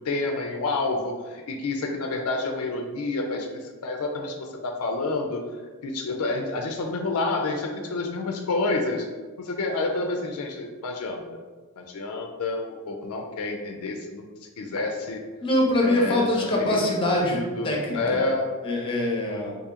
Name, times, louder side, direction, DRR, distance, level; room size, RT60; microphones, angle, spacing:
voice 1, 0.0-5.4 5.8-9.1 9.4-11.2 11.8-14.3 14.6-15.2 15.8-18.5, left 2 dB, 80° left, 3 dB, 0.4 m, -29 dB
voice 2, 15.4-18.2 18.6-19.5, left 1 dB, 25° left, -1 dB, 0.6 m, -24 dB
2.8 x 2.6 x 3.7 m, 1.4 s
head